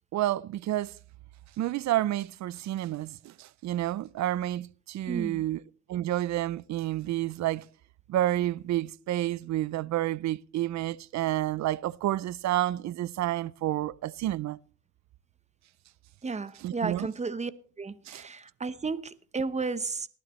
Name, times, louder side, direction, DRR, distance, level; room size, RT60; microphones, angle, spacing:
voice 1, 0.1-1.0 1.6-5.6 5.9-7.7 8.1-14.6 16.6-17.1 18.1-18.3, right 14 dB, 65° right, 0.5 m, -30 dB
voice 2, 5.1-5.4 16.2-17.5 17.8-20.1, right 4 dB, 20° right, 0.9 m, -33 dB
18.5 x 12.5 x 3.1 m
cardioid pair, 90°, 30 cm